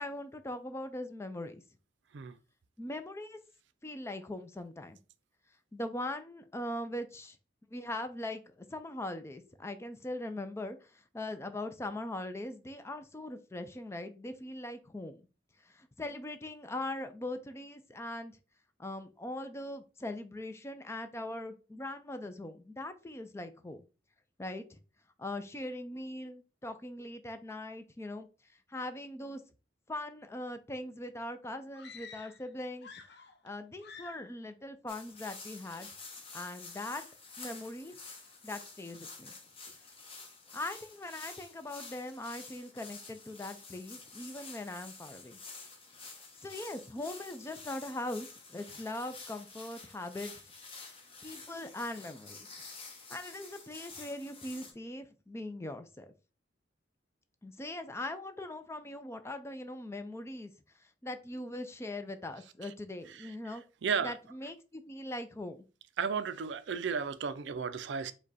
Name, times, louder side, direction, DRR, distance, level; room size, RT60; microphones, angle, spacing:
voice 1, 0.0-1.6 2.8-3.4 3.8-5.0 5.7-7.4 7.7-15.2 15.6-18.4 18.8-23.8 24.4-24.8 25.2-28.3 28.7-29.4 29.9-32.9 33.4-35.9 36.3-37.0 37.4-38.0 38.4-39.3 40.5-45.4 46.4-50.3 51.2-52.6 53.1-56.1 57.4-60.5 60.8-63.6 64.0-65.6, left 1 dB, 15° left, 0.4 m, -41 dB
sound 1, 31.7-32.5 32.8-33.5 33.8-34.4, left 5 dB, 65° left, 0.6 m, -50 dB
sound 2, 34.9-54.7, left 4 dB, 30° left, 1.0 m, -49 dB
voice 2, 63.1-64.2 66.0-68.1, right 6 dB, 70° right, 0.4 m, -34 dB
5.1 x 2.3 x 4.0 m
head